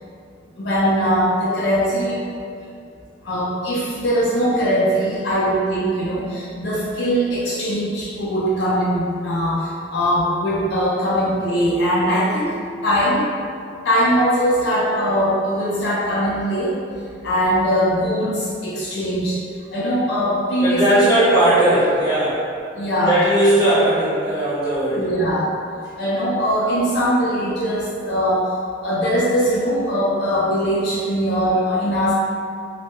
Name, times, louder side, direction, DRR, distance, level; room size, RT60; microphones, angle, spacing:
voice 1, 0.6-2.2 3.2-12.6 12.8-13.3 13.8-16.8 17.2-19.4 19.7-21.1 22.8-23.2 24.9-25.5 26.0-28.5 28.8-32.1, equal, 60° left, -8 dB, 0.4 m, -21 dB
voice 2, 20.6-22.4 23.0-25.1, right 1 dB, 20° left, -11 dB, 0.7 m, -17 dB
2.2 x 2.0 x 2.9 m, 2.3 s
head